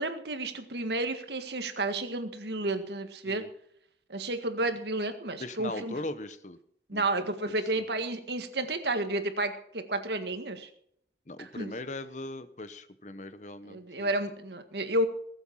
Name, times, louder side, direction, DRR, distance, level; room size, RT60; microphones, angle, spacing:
voice 1, 0.0-3.4 4.1-6.0 6.9-10.7 11.4-11.7 13.7-15.1, right 2 dB, 75° right, 8 dB, 1.8 m, -31 dB
voice 2, 5.4-6.6 6.9-7.3 7.8-7.9 11.3-14.1, left 2 dB, 45° left, 12 dB, 1.1 m, -40 dB
20.0 x 8.0 x 5.7 m, 0.69 s
head